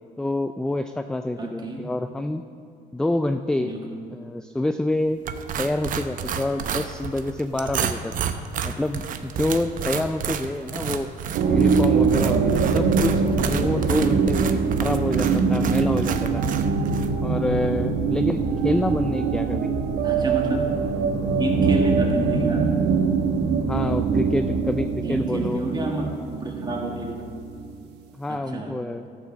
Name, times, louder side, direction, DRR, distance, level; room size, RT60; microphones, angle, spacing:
voice 1, 0.2-2.4 2.9-3.7 4.1-5.2 5.6-8.1 8.6-11.1 11.5-16.4 17.2-19.7 23.6-25.6 28.2-29.1, left 1 dB, 5° left, 8 dB, 0.3 m, -27 dB
voice 2, 1.4-1.9 3.6-4.0 12.6-12.8 20.0-20.7 21.3-22.7 25.0-26.1 26.4-27.3 28.3-28.7, right 2 dB, 25° right, 1 dB, 1.9 m, -29 dB
sound 1, 5.3-17.1, right 7 dB, 55° right, 0.7 m, -31 dB
sound 2, 11.3-27.7, right 5 dB, 85° right, 1.0 m, -23 dB
13.0 x 6.2 x 7.0 m, 2.3 s
cardioid pair, 110°, 17 cm